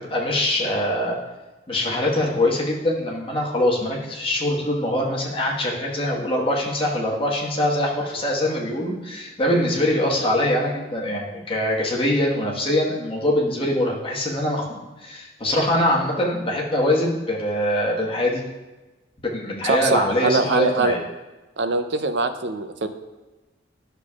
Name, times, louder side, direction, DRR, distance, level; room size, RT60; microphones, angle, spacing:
voice 1, 0.1-1.2 1.7-18.4 19.2-21.0, left 1 dB, 30° left, -3 dB, 1.4 m, -23 dB
voice 2, 19.7-20.9 21.6-22.9, right 3 dB, 70° right, 8 dB, 0.6 m, -23 dB
11.0 x 6.8 x 2.4 m, 1.2 s
head